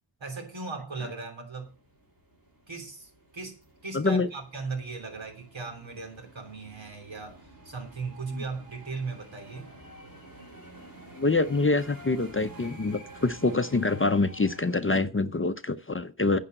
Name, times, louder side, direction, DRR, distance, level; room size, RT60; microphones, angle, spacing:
voice 1, 0.2-1.7 2.7-9.7, right 4 dB, 65° right, 3.3 m, -38 dB
sound 1, 1.6-14.7, right 1 dB, 45° right, 4.7 m, -50 dB
voice 2, 3.9-4.3 8.3-8.4 11.1-16.4, left 3 dB, 25° left, 0.7 m, -25 dB
9.7 x 5.7 x 7.9 m
cardioid pair, 45°, 48 cm